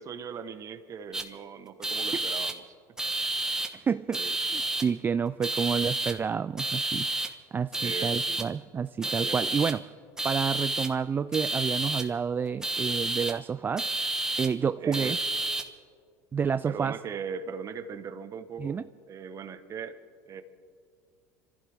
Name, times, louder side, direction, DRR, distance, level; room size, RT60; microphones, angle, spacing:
voice 1, 0.0-2.7 4.1-4.3 7.8-8.4 9.0-9.7 14.8-15.2 16.6-18.8 19.1-20.0 20.3-20.4, right 6 dB, 40° right, 9 dB, 1.2 m, -39 dB
sound 1, 1.1-1.2 1.8-2.5 3.0-3.7 4.1-4.8 5.4-6.1 6.6-7.3 7.7-8.4 9.0-9.7 10.2-10.9 11.3-12.0 12.6-13.3 13.8-14.5 14.9-15.6, right 2 dB, 5° right, 1.4 m, -30 dB
voice 2, 3.7-4.2 4.4-9.8 10.2-13.9 14.4-15.2 16.3-16.9 18.6-18.8, right 6 dB, 25° right, 13 dB, 0.3 m, -29 dB
25.5 x 15.0 x 3.6 m, 2.1 s
supercardioid pair, 100°, 9 cm